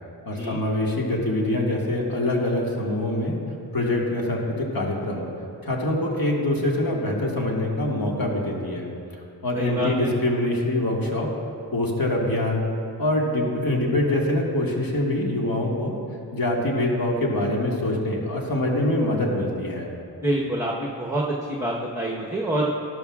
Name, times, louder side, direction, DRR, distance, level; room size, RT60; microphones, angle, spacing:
voice 1, 0.3-3.4 3.7-5.3 5.6-8.9 9.4-11.3 11.7-12.6 13.0-15.9 16.3-19.9, left 1 dB, 50° left, -2 dB, 1.8 m, -24 dB
voice 2, 9.5-10.1 20.2-22.7, right 1 dB, 5° right, -2 dB, 1.1 m, -26 dB
12.5 x 11.0 x 2.4 m, 2.5 s
cardioid pair, 50°, 46 cm